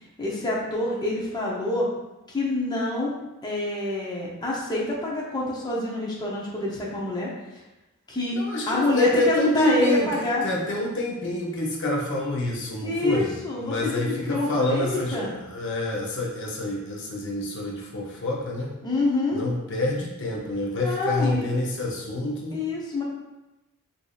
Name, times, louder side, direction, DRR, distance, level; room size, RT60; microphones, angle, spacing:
voice 1, 0.2-1.9 2.3-3.1 3.4-7.6 8.1-8.4 8.7-10.4 12.8-15.3 18.8-19.4 20.8-21.4 22.5-23.0, left 2 dB, 20° left, -5 dB, 0.6 m, -27 dB
voice 2, 8.4-18.7 19.3-22.6, left 1 dB, 55° left, -1 dB, 0.6 m, -27 dB
4.8 x 2.7 x 2.3 m, 0.99 s
head